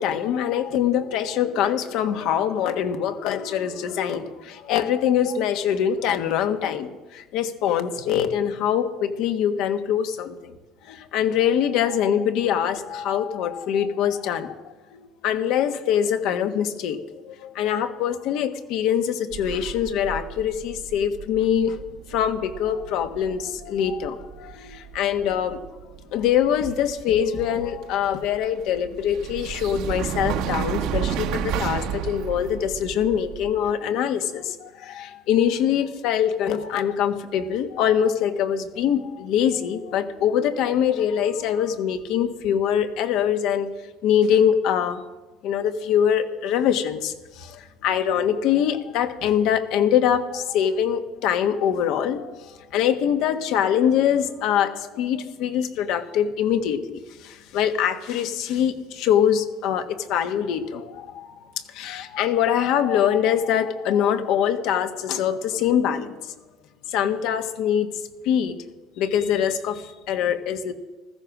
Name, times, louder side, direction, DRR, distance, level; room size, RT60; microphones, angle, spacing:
voice 1, 0.0-10.5 10.8-14.5 14.9-21.8 22.1-25.6 26.1-43.7 44.0-45.0 45.4-61.3 61.7-66.3 66.9-67.9 68.2-68.6 69.0-70.7, left 9 dB, 70° left, 8 dB, 1.4 m, -23 dB
sound 1, 19.3-33.7, right 9 dB, 75° right, 1.4 m, -33 dB
15.0 x 14.0 x 6.1 m, 1.2 s
cardioid pair, 120°, 0 cm